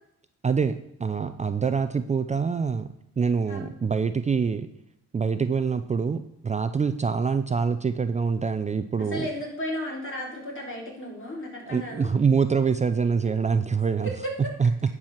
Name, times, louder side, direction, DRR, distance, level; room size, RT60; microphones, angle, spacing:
voice 1, 0.4-2.9 3.2-4.7 5.1-9.3 11.7-14.1 14.6-14.7, right 5 dB, 25° right, 10 dB, 0.5 m, -25 dB
voice 2, 9.0-12.1 13.2-13.4 14.0-14.5, equal, 40° left, -1 dB, 4.2 m, -34 dB
10.5 x 4.8 x 7.2 m, 0.78 s
cardioid pair, 90°, 30 cm